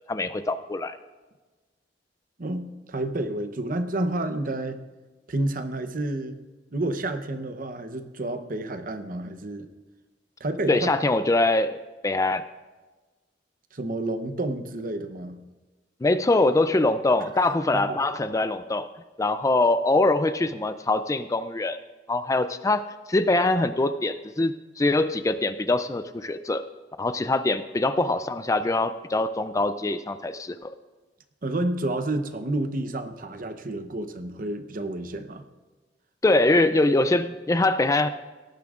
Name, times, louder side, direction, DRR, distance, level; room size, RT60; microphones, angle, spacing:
voice 1, 0.1-1.0 10.7-11.8 12.0-12.4 16.0-18.9 19.2-21.8 22.1-26.6 27.0-30.7 36.2-38.1, left 2 dB, 20° left, 11 dB, 0.4 m, -23 dB
voice 2, 2.4-4.8 5.3-6.4 6.7-9.7 10.4-10.9 13.7-15.4 17.7-18.0 31.4-35.4, right 2 dB, 50° right, 9 dB, 0.8 m, -30 dB
18.0 x 14.0 x 2.5 m, 1.2 s
head